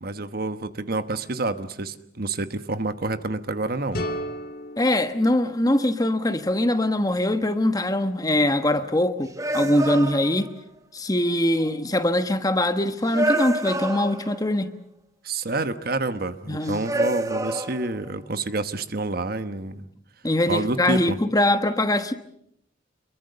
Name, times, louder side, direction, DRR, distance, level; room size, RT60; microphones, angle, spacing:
voice 1, 0.0-4.0 15.2-19.9 20.5-21.2, right 2 dB, 50° right, 1.2 m, -28 dB
sound 1, 3.9-6.8, equal, 50° left, 2.2 m, -35 dB
sound 2, 3.9-4.3 8.5-8.6 9.4-10.7 11.6-11.7 13.1-14.5 16.6-18.1, right 1 dB, 15° right, 0.9 m, -28 dB
voice 2, 4.8-10.5 10.9-14.7 16.5-16.8 20.2-22.1, left 1 dB, 20° left, 1.2 m, -22 dB
27.0 x 23.0 x 6.7 m
head